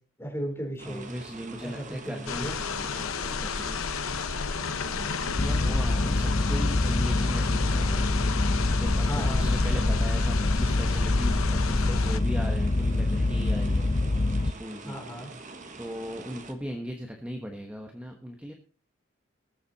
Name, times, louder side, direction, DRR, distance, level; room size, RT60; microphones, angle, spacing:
voice 1, 0.2-1.1 1.6-2.5 9.0-9.5 14.8-15.3, equal, 10° left, 1 dB, 3.7 m, -35 dB
voice 2, 0.8-4.6 4.9-13.9 14.4-15.0 15.8-18.5, equal, 5° right, 3 dB, 1.2 m, -39 dB
sound 1, 0.8-16.5, right 3 dB, 35° right, 1.5 m, -45 dB
sound 2, 2.3-12.2, left 5 dB, 90° left, 0.9 m, -31 dB
sound 3, 5.3-14.5, left 2 dB, 30° left, 0.5 m, -25 dB
20.0 x 7.7 x 4.1 m, 0.37 s
head